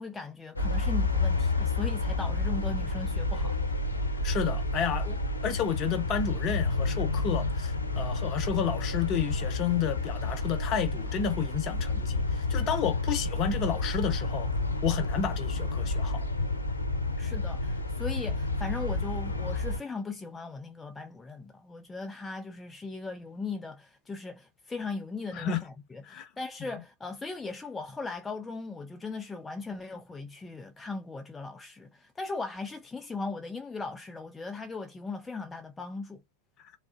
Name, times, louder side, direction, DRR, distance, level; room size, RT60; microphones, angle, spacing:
voice 1, 0.0-3.6 17.2-36.2, left 3 dB, 10° left, 0.4 m, -38 dB
sound 1, 0.6-19.8, left 2 dB, 75° left, 0.9 m, -30 dB
voice 2, 4.2-5.2 5.4-12.2 12.5-14.5 14.8-16.2 25.3-25.6 26.1-26.3, left 7 dB, 35° left, 0.8 m, -31 dB
3.6 x 2.0 x 2.5 m
figure-of-eight pair, 90°, 0 cm